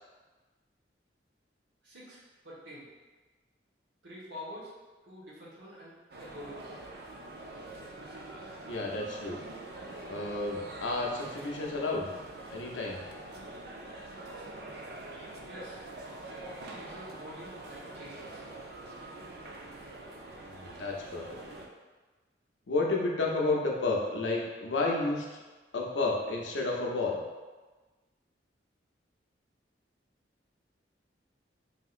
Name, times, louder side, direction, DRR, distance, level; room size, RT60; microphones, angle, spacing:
voice 1, 1.8-2.9 4.0-4.7 5.0-6.6 15.4-15.8 16.4-18.5, equal, 80° right, -7 dB, 1.1 m, -47 dB
sound 1, 6.1-21.7, right 2 dB, 55° right, 0.4 m, -45 dB
voice 2, 8.7-9.4 10.1-12.1 12.5-13.0 20.4-21.4 22.7-25.4 25.7-27.2, left 3 dB, 85° left, -1 dB, 0.6 m, -31 dB
3.4 x 2.8 x 2.4 m, 1.3 s
head